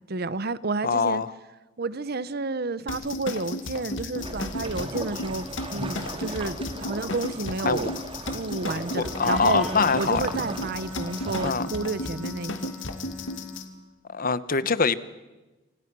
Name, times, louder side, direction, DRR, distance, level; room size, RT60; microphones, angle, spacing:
voice 1, 0.1-1.2 1.8-5.5 5.7-7.9 8.3-9.7 10.0-12.7, right 3 dB, 55° right, 0.8 m, -30 dB
voice 2, 0.8-1.3 7.6-7.9 9.0-10.2 11.4-11.7 14.1-14.9, left 5 dB, 45° left, 1.1 m, -24 dB
sound 1, 2.9-13.6, left 2 dB, 75° left, 2.3 m, -34 dB
sound 2, 4.2-11.5, right 2 dB, 30° right, 2.3 m, -37 dB
Wind instrument woodwind instrument, 9.0-13.8, equal, ahead, 4.8 m, -40 dB
28.0 x 26.5 x 6.2 m
head